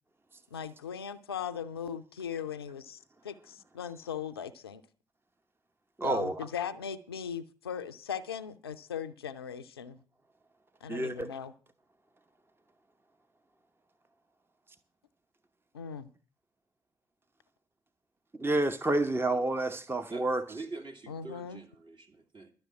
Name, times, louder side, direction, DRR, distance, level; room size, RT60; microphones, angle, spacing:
voice 1, 0.5-3.0 3.2-4.8 6.0-10.0 10.8-11.5 15.7-16.1 21.1-21.6, left 8 dB, 90° left, 0.5 m, -38 dB
voice 2, 6.0-6.4 10.9-11.3 18.4-20.4, right 2 dB, 20° right, 0.9 m, -29 dB
voice 3, 20.1-22.5, right 3 dB, 40° right, 2.5 m, -45 dB
11.5 x 6.7 x 8.5 m
figure-of-eight pair, 40°, 12 cm